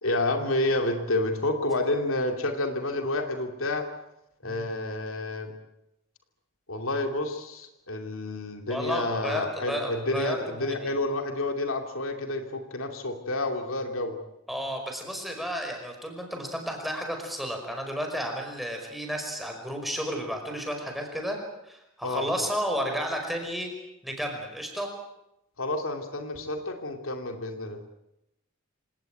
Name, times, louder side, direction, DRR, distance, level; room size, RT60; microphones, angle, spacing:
voice 1, 0.0-3.8 4.4-5.5 6.7-14.2 22.0-22.3 25.6-27.8, left 2 dB, 75° left, 5 dB, 2.7 m, -29 dB
voice 2, 8.7-10.9 14.5-21.4 21.7-23.7 24.0-24.9, equal, ahead, 3 dB, 5.2 m, -32 dB
27.0 x 18.0 x 9.2 m, 0.87 s
head